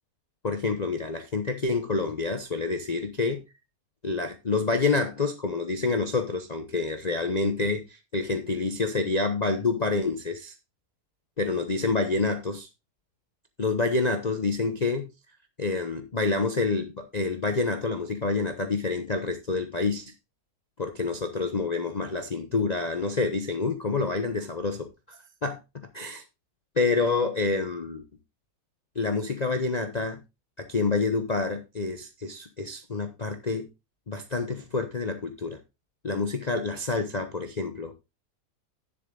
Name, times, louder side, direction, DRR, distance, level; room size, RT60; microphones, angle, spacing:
voice 1, 0.4-3.4 4.0-10.5 11.4-12.7 13.6-15.1 15.6-20.1 20.8-26.2 26.8-28.0 29.0-30.2 30.6-33.7 34.1-35.6 36.0-37.9, left 3 dB, 35° left, 0.7 m, -28 dB
10.5 x 7.4 x 3.8 m
omnidirectional pair, 1.7 m